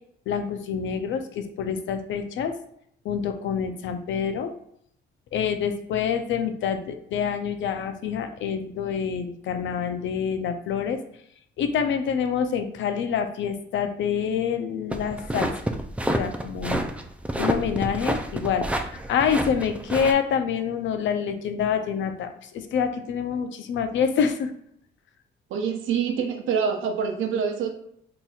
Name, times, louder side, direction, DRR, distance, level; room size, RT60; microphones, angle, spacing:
voice 1, 0.3-2.6 3.0-4.5 5.3-11.0 11.6-15.7 16.1-16.8 17.4-24.5, left 7 dB, 70° left, 7 dB, 0.5 m, -27 dB
sound 1, 14.9-20.1, right 1 dB, 5° right, 0.3 m, -28 dB
voice 2, 25.5-27.7, right 6 dB, 85° right, 3 dB, 0.7 m, -26 dB
4.0 x 2.9 x 2.3 m, 0.70 s
cardioid pair, 90°, 20 cm